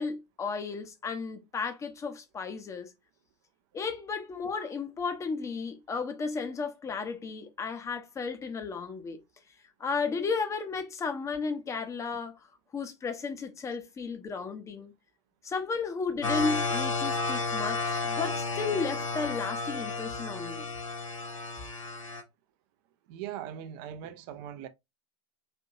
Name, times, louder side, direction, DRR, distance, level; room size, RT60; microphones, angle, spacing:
voice 1, 0.0-2.9 3.7-9.2 9.8-12.3 12.7-14.9 15.4-20.7, left 4 dB, 20° left, 0.7 m, -34 dB
sound 1, 16.2-22.2, left 3 dB, 85° left, 0.6 m, -32 dB
voice 2, 23.1-24.7, right 10 dB, 45° right, 0.6 m, -40 dB
4.3 x 2.6 x 2.6 m
figure-of-eight pair, 85°, 16 cm